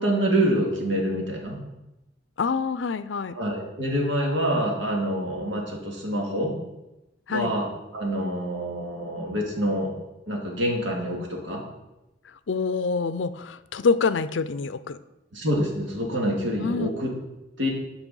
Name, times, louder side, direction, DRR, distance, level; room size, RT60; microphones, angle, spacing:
voice 1, 0.0-1.6 3.3-6.5 7.3-7.7 7.9-9.9 10.3-11.6 15.3-17.1 17.6-17.7, equal, 75° right, -1 dB, 2.4 m, -26 dB
voice 2, 2.4-3.3 7.3-7.5 12.5-15.0 16.6-16.9, left 4 dB, 75° left, 14 dB, 0.5 m, -26 dB
10.0 x 5.6 x 5.4 m, 0.94 s
head